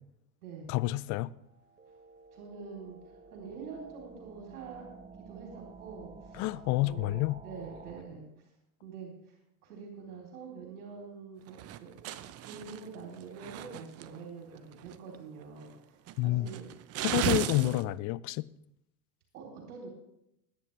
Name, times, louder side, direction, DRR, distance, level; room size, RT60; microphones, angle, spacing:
voice 1, 0.7-1.3 6.3-7.4 16.2-16.5 17.0-18.4, left 18 dB, 40° left, 0.6 m, -29 dB
sound 1, 1.4-8.0, right 4 dB, 20° right, 1.2 m, -52 dB
voice 2, 2.3-4.9 5.3-6.5 6.8-8.5 8.8-11.9 12.2-16.7 17.1-17.8 19.3-19.9, right 5 dB, 70° right, 3.8 m, -46 dB
sound 2, 11.5-14.2 14.5-15.2 15.6-15.7 16.1-17.8, right 12 dB, 35° right, 0.8 m, -35 dB
20.5 x 9.8 x 3.4 m
hypercardioid pair, 90°, 45 cm